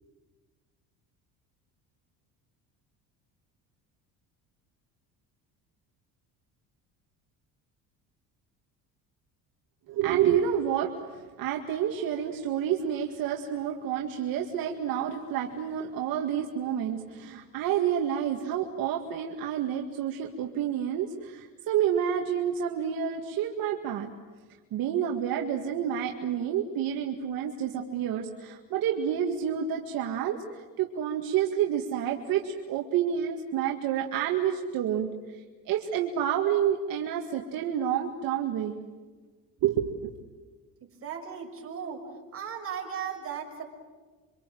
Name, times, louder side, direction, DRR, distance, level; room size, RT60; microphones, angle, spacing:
voice 1, 9.9-24.1 24.7-35.4 35.7-38.8 39.6-40.1, right 9 dB, 65° right, 2 dB, 2.1 m, -29 dB
voice 2, 41.0-43.6, right 7 dB, 35° right, 1 dB, 5.9 m, -37 dB
28.0 x 25.5 x 7.8 m, 1.4 s
cardioid pair, 145°, 37 cm